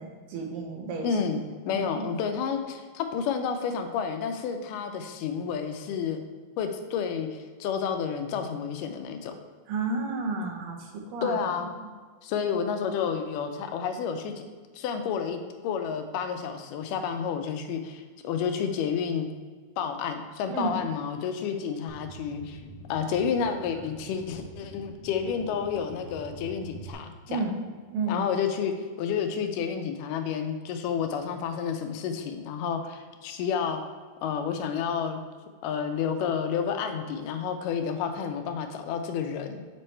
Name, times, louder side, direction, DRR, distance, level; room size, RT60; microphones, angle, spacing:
voice 1, 0.0-1.1 1.7-2.1 9.7-10.8 11.1-11.3 20.5-20.7 27.3-27.6 27.9-28.2, right 3 dB, 80° right, 2 dB, 2.5 m, -31 dB
voice 2, 1.0-6.2 6.6-9.3 11.2-11.7 12.2-14.3 14.7-19.3 19.8-22.6 22.9-27.4 28.1-33.8 34.2-35.2 35.6-39.6, left 7 dB, 85° left, 6 dB, 2.1 m, -30 dB
sound 1, 21.9-26.9, right 1 dB, 35° left, 1.1 m, -45 dB
7.5 x 3.2 x 4.3 m, 1.5 s
omnidirectional pair, 3.8 m